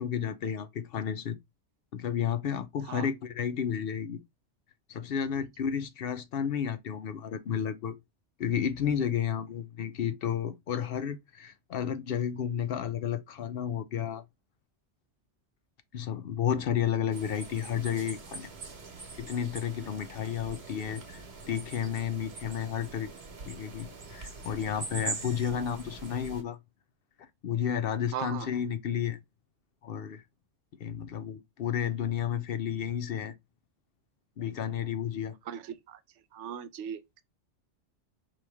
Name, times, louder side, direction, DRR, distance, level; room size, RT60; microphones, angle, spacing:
voice 1, 0.0-1.4 1.9-4.2 4.9-8.0 8.4-14.2 15.9-18.5 19.2-23.1 23.5-26.6 27.4-29.2 29.8-30.2 30.8-33.3 34.4-35.3, left 8 dB, 60° left, 0.7 m, -32 dB
sound 1, 17.1-26.4, right 4 dB, 65° right, 1.4 m, -43 dB
voice 2, 28.1-28.5 35.5-36.0 36.3-37.0, right 9 dB, 80° right, 0.9 m, -38 dB
4.9 x 3.0 x 3.4 m
omnidirectional pair, 1.2 m